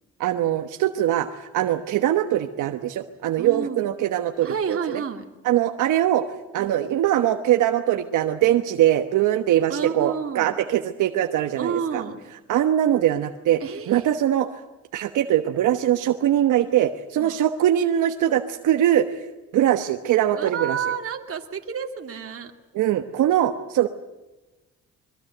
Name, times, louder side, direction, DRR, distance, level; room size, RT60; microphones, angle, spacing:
voice 1, 0.2-5.0 5.4-6.2 6.5-12.0 12.5-13.6 13.9-14.5 14.9-19.1 19.5-20.8 22.7-23.9, right 12 dB, 80° right, 7 dB, 1.2 m, -22 dB
voice 2, 3.4-4.0 4.4-5.2 6.6-6.8 9.7-10.6 11.6-12.2 13.6-14.1 17.2-17.4 20.4-22.5, right 6 dB, 50° right, 4 dB, 2.6 m, -30 dB
22.5 x 22.5 x 8.0 m, 1.1 s
cardioid pair, 90°, 30 cm